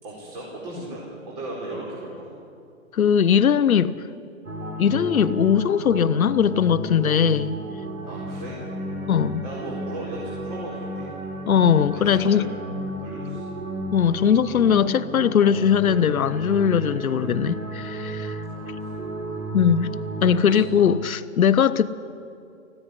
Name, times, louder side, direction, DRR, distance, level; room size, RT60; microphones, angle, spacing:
voice 1, 0.0-2.3 8.0-8.6 9.4-11.1 11.9-12.5 13.0-13.5 18.5-19.0 20.2-20.8, right 1 dB, 35° right, 4.6 m, -37 dB
voice 2, 2.9-4.0 4.8-7.6 9.1-9.4 11.5-12.5 13.9-18.4 19.5-19.9 20.2-21.9, left 8 dB, 85° left, 0.8 m, -20 dB
sound 1, 4.4-20.6, right 1 dB, 75° right, 3.7 m, -33 dB
17.5 x 15.0 x 9.8 m
hypercardioid pair, 150°, 41 cm